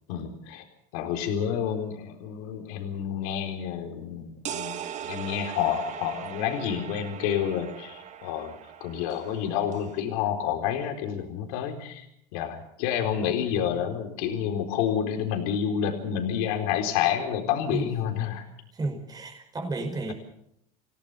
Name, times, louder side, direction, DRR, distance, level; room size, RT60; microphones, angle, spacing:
voice 1, 0.1-0.6 0.9-8.5 8.8-12.0 12.3-18.5, left 9 dB, 75° left, 4 dB, 4.1 m, -29 dB
sound 1, 4.5-10.0, right 9 dB, 40° right, 1.7 m, -39 dB
voice 2, 18.7-20.1, right 2 dB, 20° right, 3 dB, 5.4 m, -32 dB
28.0 x 17.5 x 6.9 m, 0.73 s
supercardioid pair, 120°, 19 cm